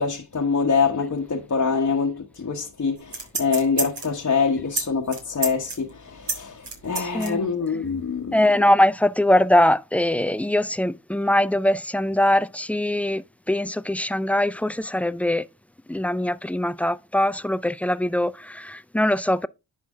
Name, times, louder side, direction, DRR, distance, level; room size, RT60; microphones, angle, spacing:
voice 1, 0.0-8.3, left 5 dB, 35° left, 1.2 m, -25 dB
sound 1, 3.0-4.2 4.7-4.8 5.1-7.3 7.7-7.8, right 4 dB, 65° right, 2.6 m, -29 dB
voice 2, 7.0-7.5 8.3-15.5 15.9-19.5, left 1 dB, 5° left, 0.3 m, -22 dB
10.5 x 4.3 x 3.6 m
supercardioid pair, 45°, 45 cm